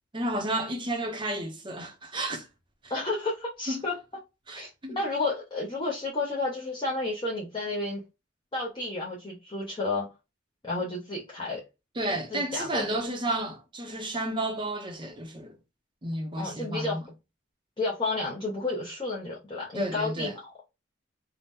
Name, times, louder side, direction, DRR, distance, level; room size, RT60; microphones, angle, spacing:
voice 1, 0.1-2.4 3.7-3.8 4.5-5.0 12.0-15.5 16.0-17.0 19.7-20.3, right 1 dB, 25° right, 0.6 m, -32 dB
voice 2, 2.9-4.0 4.5-8.0 8.5-10.1 10.6-11.6 12.3-12.8 16.4-17.0 17.8-20.6, left 2 dB, 25° left, 0.6 m, -31 dB
2.8 x 2.0 x 3.4 m
head